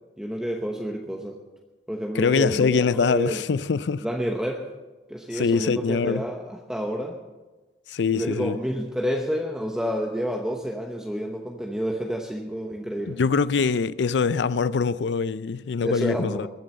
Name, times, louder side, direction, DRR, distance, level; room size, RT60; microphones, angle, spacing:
voice 1, 0.2-1.4 1.9-3.4 4.0-4.7 5.1-7.2 8.1-13.2 15.8-16.5, equal, 5° right, 0.9 m, -29 dB
voice 2, 2.1-4.0 5.3-6.2 7.9-8.6 13.1-16.5, left 5 dB, 90° left, 0.4 m, -23 dB
21.5 x 7.7 x 6.7 m
head